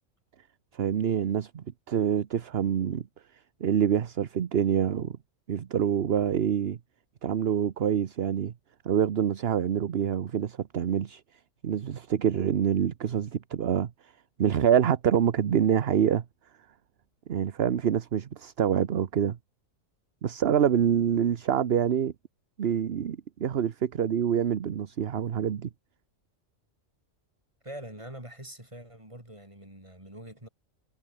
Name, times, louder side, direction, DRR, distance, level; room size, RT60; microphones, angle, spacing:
voice 1, 0.7-3.0 3.6-5.2 5.5-6.8 7.2-8.5 8.8-11.2 11.6-13.9 14.4-16.2 17.3-19.4 20.2-22.1 22.6-25.7, right 8 dB, 55° right, 1.1 m, -26 dB
voice 2, 27.6-30.5, right 1 dB, 25° right, 6.5 m, -44 dB
omnidirectional pair, 1.3 m